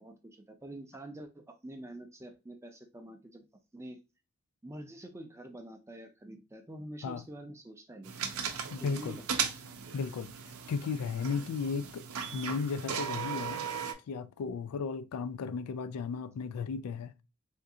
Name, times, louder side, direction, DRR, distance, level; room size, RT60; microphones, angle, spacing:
voice 1, 0.0-3.4 3.7-4.0 4.6-8.5 8.8-9.2 9.6-9.7, right 1 dB, 10° right, 0.4 m, -46 dB
sound 1, 8.0-13.9, right 7 dB, 75° right, 0.5 m, -37 dB
voice 2, 8.7-9.2 9.9-12.1 12.3-13.6 14.1-17.1, left 5 dB, 90° left, 0.3 m, -35 dB
3.5 x 2.4 x 2.7 m
head